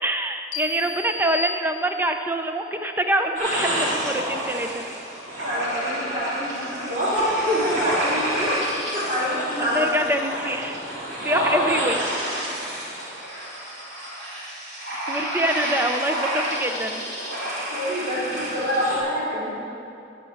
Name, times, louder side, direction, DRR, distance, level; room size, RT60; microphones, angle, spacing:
voice 1, 0.0-4.9 9.6-10.8 11.1-12.1 14.9-17.0, right 1 dB, 10° right, 6 dB, 0.5 m, -25 dB
sound 1, 0.5-2.3, left 3 dB, 75° left, 0.8 m, -33 dB
sound 2, 3.3-19.0, right 1 dB, 75° right, 3.4 m, -29 dB
voice 2, 5.4-8.6 8.9-9.9 13.3-13.6 17.6-19.5, equal, 35° right, -11 dB, 2.9 m, -26 dB
12.5 x 5.7 x 8.5 m, 2.7 s
head